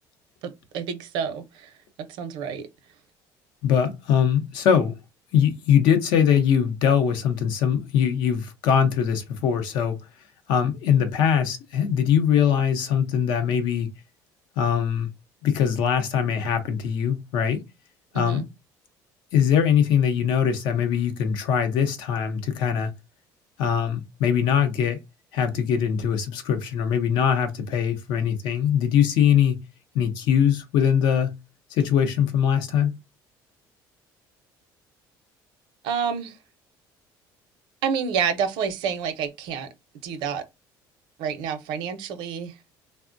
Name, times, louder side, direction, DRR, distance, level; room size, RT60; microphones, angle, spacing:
voice 1, 0.4-1.7 2.1-2.7 18.1-18.4 35.8-36.4 37.8-39.7 40.0-40.4 41.2-42.6, right 7 dB, 80° right, 0.6 m, -28 dB
voice 2, 3.6-5.0 5.3-10.0 10.5-13.9 14.6-15.1 15.4-17.6 18.1-18.5 19.3-22.9 23.6-25.0 25.3-29.6 29.9-31.4 31.7-32.9, left 8 dB, 75° left, 0.7 m, -22 dB
3.4 x 2.1 x 2.5 m
cardioid pair, 145°, 8 cm